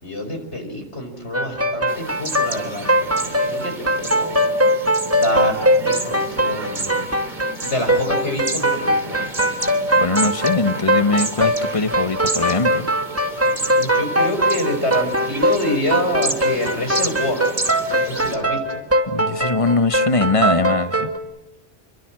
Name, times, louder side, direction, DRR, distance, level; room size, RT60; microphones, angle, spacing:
voice 1, 0.0-4.4 5.2-7.0 7.6-9.6 13.8-17.4 17.9-18.8, left 1 dB, 75° left, 5 dB, 5.5 m, -27 dB
sound 1, 1.3-21.2, equal, 10° right, 2.2 m, -20 dB
sound 2, 1.9-18.4, right 2 dB, 40° right, 3.0 m, -32 dB
voice 2, 9.9-12.9 19.1-21.1, left 3 dB, 30° left, 11 dB, 1.2 m, -21 dB
28.5 x 23.5 x 7.6 m, 1.0 s
omnidirectional pair, 1.2 m